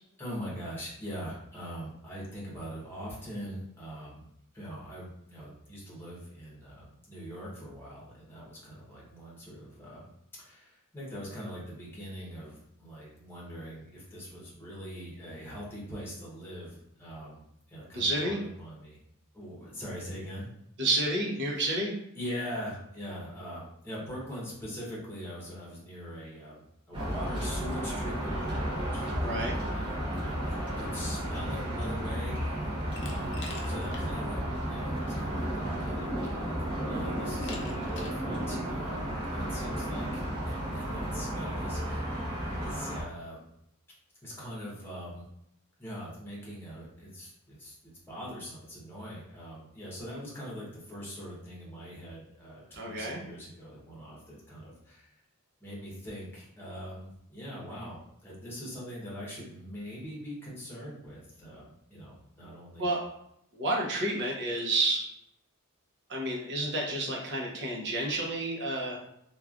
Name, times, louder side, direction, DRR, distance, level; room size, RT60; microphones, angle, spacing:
voice 1, 0.2-4.2 4.5-10.1 10.4-17.4 17.7-19.0 19.3-20.5 21.6-21.7 22.1-36.5 36.8-43.5 44.2-45.2 45.8-55.1 55.6-61.6 61.9-62.9 68.8-68.9, equal, 10° left, -6 dB, 1.0 m, -42 dB
voice 2, 17.9-18.4 20.8-21.9 29.2-29.6 52.7-53.2 62.8-63.0 63.5-65.0 66.1-69.0, right 2 dB, 55° right, -2 dB, 0.7 m, -30 dB
sound 1, 26.9-43.0, equal, 25° right, 0.8 m, -33 dB
Glass, 33.0-34.1 34.5-34.6 35.7-35.8 36.2-36.7 37.4-38.2, left 4 dB, 55° left, 0.5 m, -45 dB
3.1 x 2.3 x 2.4 m, 0.77 s
head